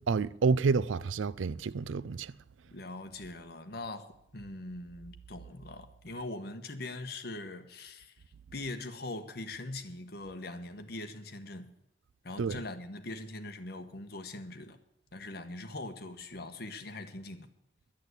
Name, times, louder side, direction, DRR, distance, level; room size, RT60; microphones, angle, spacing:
voice 1, 0.1-2.3 12.4-12.6, right 4 dB, 85° right, 0.4 m, -29 dB
voice 2, 2.7-8.1 8.5-11.7 12.2-14.8 15.1-17.5, left 2 dB, 55° left, 1.3 m, -42 dB
10.5 x 10.5 x 8.2 m
head